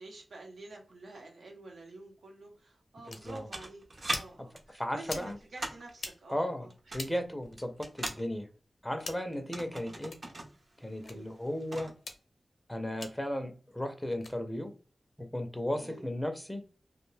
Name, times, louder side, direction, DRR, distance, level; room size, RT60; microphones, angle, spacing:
voice 1, 0.0-3.8 4.1-7.1 11.0-11.3 15.8-16.0, right 2 dB, 85° right, 0 dB, 0.9 m, -49 dB
sound 1, 3.1-3.2 4.0-4.3 5.0-5.3 5.9-6.1 6.9-7.1 8.0-8.2 9.0-9.3 10.0-10.2 11.0-11.2 12.0-12.2 13.0-13.1 14.1-14.3, left 3 dB, 75° left, 0.6 m, -41 dB
voice 2, 3.1-3.5 4.8-5.4 6.3-6.7 6.9-8.5 8.8-10.1 10.8-11.9 12.7-14.7 15.2-16.6, left 1 dB, 10° left, 6 dB, 0.5 m, -35 dB
sound 2, 3.1-4.2 4.6-5.9 6.7-8.2 9.3-10.5 10.8-10.9 11.3-12.0, right 2 dB, 45° right, 0.6 m, -40 dB
2.4 x 2.2 x 3.1 m, 0.38 s
wide cardioid pair, 90°, 0 cm